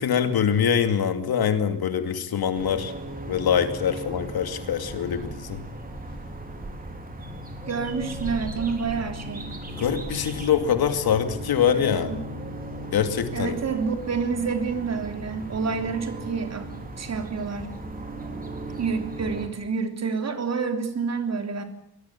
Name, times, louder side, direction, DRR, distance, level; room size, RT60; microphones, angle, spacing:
voice 1, 0.0-2.9 3.3-5.6 9.8-12.1 12.9-13.6, left 8 dB, 70° left, 9 dB, 2.6 m, -24 dB
sound 1, 2.5-19.5, right 1 dB, 20° right, 3.6 m, -37 dB
voice 2, 7.7-9.5 11.7-12.2 13.3-16.7 17.0-17.7 18.8-21.6, right 5 dB, 45° right, 7 dB, 3.3 m, -28 dB
24.5 x 20.5 x 8.6 m, 0.76 s
wide cardioid pair, 175°, 38 cm